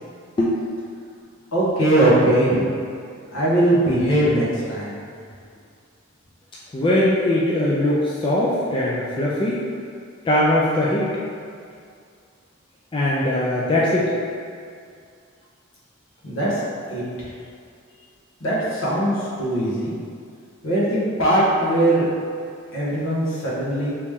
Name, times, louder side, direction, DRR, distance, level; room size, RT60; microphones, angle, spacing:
voice 1, 1.5-2.7 3.3-5.0 16.2-16.6 16.9-17.3 18.4-19.9 20.6-22.1 22.7-23.9, right 1 dB, 70° left, -7 dB, 1.0 m, -20 dB
voice 2, 6.7-9.6 10.3-11.1 12.9-14.1, left 1 dB, 25° left, -6 dB, 0.3 m, -20 dB
3.2 x 2.9 x 3.5 m, 2.3 s
head